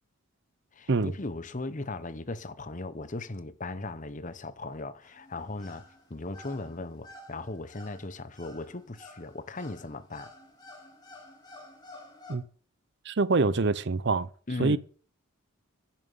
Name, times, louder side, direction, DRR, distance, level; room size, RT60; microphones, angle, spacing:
voice 1, 0.8-5.8 6.1-10.3 14.5-14.8, left 2 dB, 35° left, 0.9 m, -37 dB
sound 1, 5.0-12.4, left 2 dB, 20° left, 2.7 m, -51 dB
voice 2, 13.1-14.3 14.6-14.8, right 3 dB, 55° right, 0.6 m, -25 dB
10.5 x 7.5 x 8.6 m
head